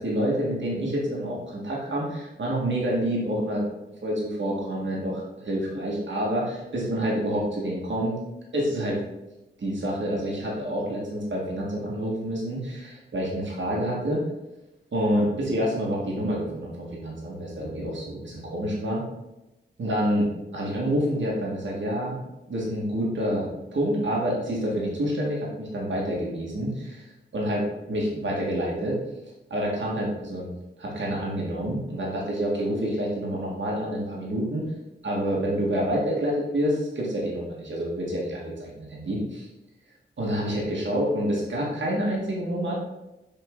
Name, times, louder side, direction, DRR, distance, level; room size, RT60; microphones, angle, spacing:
voice 1, 0.0-3.6 4.0-8.2 8.5-9.0 9.6-14.2 14.9-19.0 19.8-22.2 22.5-29.0 29.5-30.5 30.8-34.6 35.0-39.5 40.2-42.7, equal, 60° right, -4 dB, 1.7 m, -28 dB
6.6 x 3.8 x 3.8 m, 0.97 s
cardioid pair, 70°, 21 cm